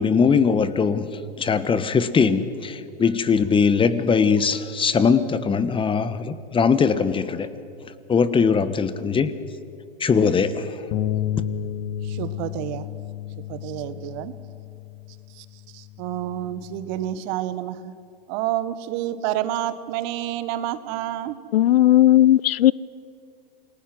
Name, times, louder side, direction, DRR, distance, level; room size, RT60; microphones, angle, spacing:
voice 1, 0.0-7.5 8.1-9.3 10.0-10.8, left 5 dB, 15° left, 1.2 m, -21 dB
sound 1, 10.9-17.2, left 11 dB, 45° left, 1.2 m, -32 dB
voice 2, 12.1-12.9 13.5-14.3 15.4-15.5 15.7-17.9 18.3-21.4, right 13 dB, 50° right, 1.5 m, -29 dB
voice 3, 21.5-22.7, left 13 dB, 75° left, 0.6 m, -15 dB
28.5 x 20.5 x 6.3 m
hypercardioid pair, 110°, 30 cm